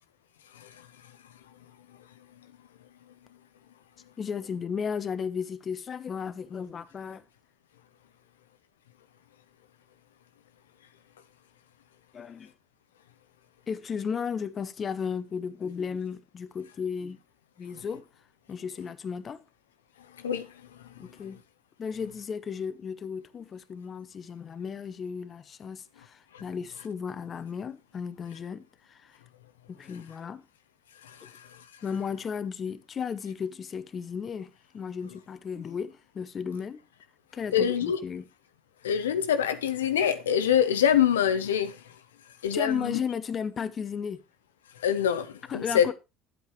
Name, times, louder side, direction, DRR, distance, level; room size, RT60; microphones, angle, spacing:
voice 1, 4.2-7.2 12.1-12.5 13.7-17.2 17.6-18.1 18.5-19.4 21.0-21.4 21.8-29.2 29.7-30.4 31.8-36.8 37.3-38.3 42.5-44.2 45.5-45.9, left 6 dB, 35° left, 0.7 m, -34 dB
voice 2, 31.0-31.5 37.5-38.0 38.8-41.8 42.4-43.0 44.8-45.9, left 9 dB, 80° left, 0.7 m, -25 dB
10.0 x 8.1 x 3.1 m
hypercardioid pair, 65°, 0 cm